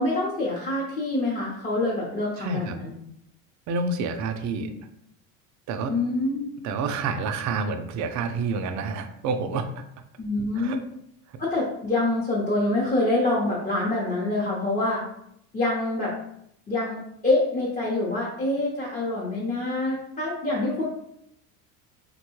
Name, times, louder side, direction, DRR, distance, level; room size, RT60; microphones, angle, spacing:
voice 1, 0.0-2.9 4.6-4.7 5.8-6.5 10.2-10.8 11.4-15.0 15.5-16.1 16.7-20.8, left 2 dB, 20° left, -6 dB, 0.8 m, -26 dB
voice 2, 2.4-2.8 3.7-4.7 5.7-5.9 6.6-9.8 10.6-10.8 11.3-11.4, right 4 dB, 50° right, 7 dB, 0.4 m, -28 dB
3.4 x 2.2 x 3.0 m, 0.75 s
supercardioid pair, 110°, 39 cm